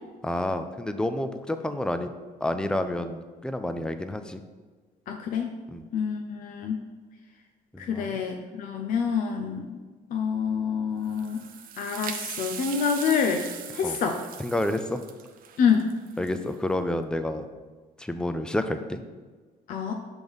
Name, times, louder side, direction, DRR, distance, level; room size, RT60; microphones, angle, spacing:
voice 1, 0.2-2.1 2.4-4.4 5.7-5.8 7.7-8.2 13.8-14.0 14.4-15.0 16.2-17.5 18.0-19.0, left 1 dB, 5° left, 9 dB, 0.4 m, -29 dB
voice 2, 5.1-5.5 5.9-6.8 7.8-9.8 10.1-11.4 11.8-13.4 13.7-14.2 15.6-15.9 19.7-19.9, left 6 dB, 55° left, 3 dB, 0.6 m, -27 dB
sound 1, 11.0-16.5, right 8 dB, 55° right, 0.6 m, -39 dB
6.0 x 3.6 x 5.3 m, 1.4 s
cardioid pair, 110°, 17 cm